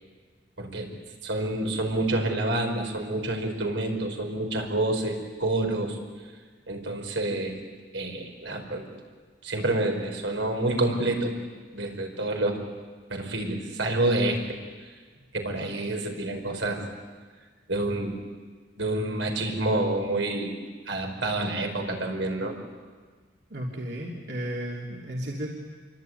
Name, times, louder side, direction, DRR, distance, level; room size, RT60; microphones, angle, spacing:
voice 1, 1.2-6.0 6.7-7.6 7.9-8.9 9.4-11.3 11.7-12.6 13.1-14.4 15.3-16.8 17.7-18.2 18.8-20.5 20.9-22.6, right 2 dB, 85° right, 3 dB, 5.1 m, -28 dB
voice 2, 23.5-25.5, right 1 dB, 65° right, -2 dB, 3.1 m, -33 dB
27.5 x 23.5 x 9.3 m, 1.5 s
head